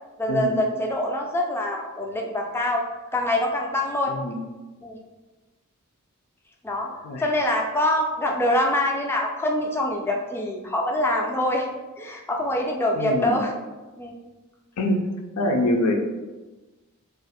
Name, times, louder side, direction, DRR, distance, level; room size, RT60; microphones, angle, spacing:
voice 1, 0.2-2.8 3.1-4.1 4.8-5.0 6.6-6.9 7.2-11.7 12.0-13.5 14.0-14.2, left 1 dB, 10° left, 0 dB, 0.4 m, -24 dB
voice 2, 4.1-4.4 7.0-7.2 13.0-13.4 14.8-15.0 15.4-15.9, left 1 dB, 90° left, 3 dB, 0.5 m, -24 dB
2.6 x 2.5 x 4.1 m, 1.2 s
head